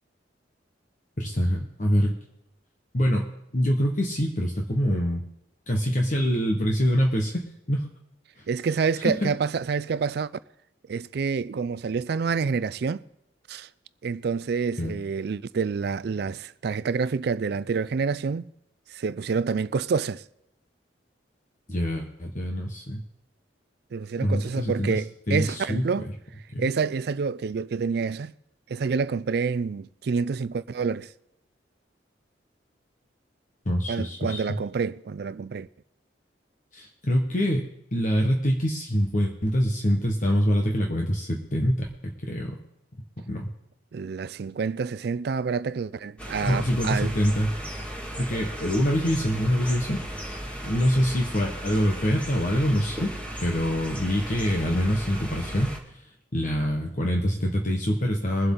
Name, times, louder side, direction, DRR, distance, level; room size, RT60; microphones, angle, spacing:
voice 1, 1.2-2.2 2.9-3.3 3.5-5.2 5.7-7.9 9.0-9.3 14.8-14.9 21.7-23.0 24.2-25.0 25.3-26.1 26.5-26.7 33.7-34.4 36.7-42.6 43.2-43.5 46.4-47.5 48.2-50.0 50.6-53.1 53.4-56.0 56.3-58.5, equal, 45° left, 1.3 m, -25 dB
voice 2, 8.5-10.3 10.9-13.0 13.5-13.7 14.0-18.4 18.9-20.2 23.9-26.1 26.6-28.3 28.7-31.1 33.9-35.7 43.9-47.1, right 5 dB, 60° right, 0.4 m, -28 dB
sound 1, 46.2-55.8, equal, 5° left, 1.9 m, -36 dB
22.0 x 7.9 x 3.8 m
head